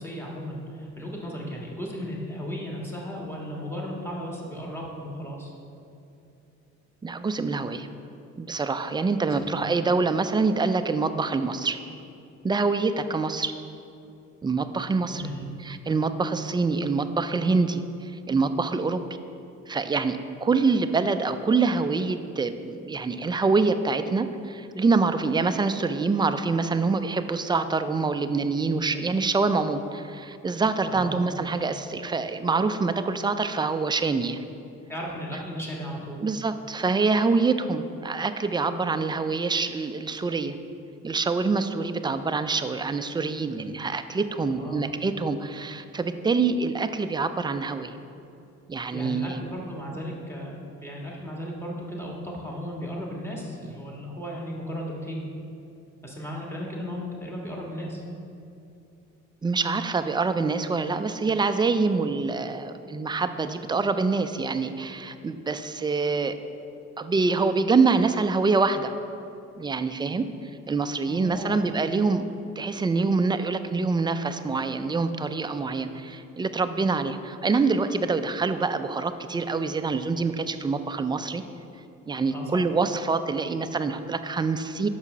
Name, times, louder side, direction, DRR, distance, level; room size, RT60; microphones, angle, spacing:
voice 1, 0.0-5.5 9.2-9.8 15.1-15.5 30.9-31.2 34.9-36.2 44.4-44.9 48.9-55.2 56.0-58.0 71.0-71.6 82.3-82.6, equal, 10° left, -3 dB, 1.5 m, -35 dB
voice 2, 7.0-7.9 8.4-11.8 12.4-13.5 14.4-15.3 15.6-19.0 19.7-34.4 36.2-40.6 41.0-48.0 48.7-49.4 59.4-66.4 67.0-68.9 69.6-70.3 70.7-72.2 72.6-81.4 82.1-84.9, right 4 dB, 15° right, 10 dB, 0.3 m, -25 dB
5.7 x 5.5 x 6.0 m, 2.6 s
cardioid pair, 90°, 30 cm